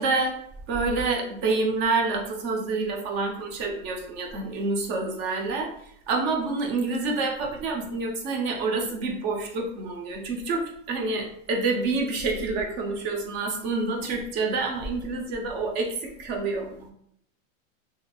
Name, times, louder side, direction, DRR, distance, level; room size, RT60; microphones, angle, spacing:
voice 1, 0.0-5.7 6.1-16.9, right 3 dB, 30° right, 2 dB, 0.4 m, -28 dB
2.8 x 2.6 x 2.2 m, 0.69 s
supercardioid pair, 140°, 40 cm